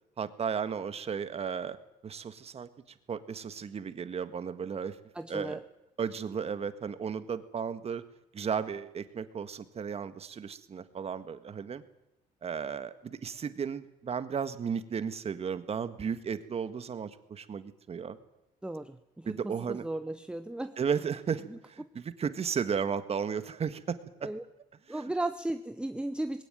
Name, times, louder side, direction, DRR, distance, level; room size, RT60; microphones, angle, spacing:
voice 1, 0.2-1.8 2.0-2.7 3.1-5.0 5.3-5.6 6.0-8.0 8.3-11.8 12.4-18.2 19.3-19.8 20.8-24.3 24.9-25.1, right 6 dB, 35° right, 11 dB, 1.7 m, -34 dB
voice 2, 5.1-5.6 18.6-20.8 21.5-21.6 24.2-24.4 24.9-26.4, right 1 dB, 5° right, 10 dB, 0.9 m, -35 dB
20.5 x 17.5 x 9.3 m, 0.87 s
cardioid pair, 110°, 17 cm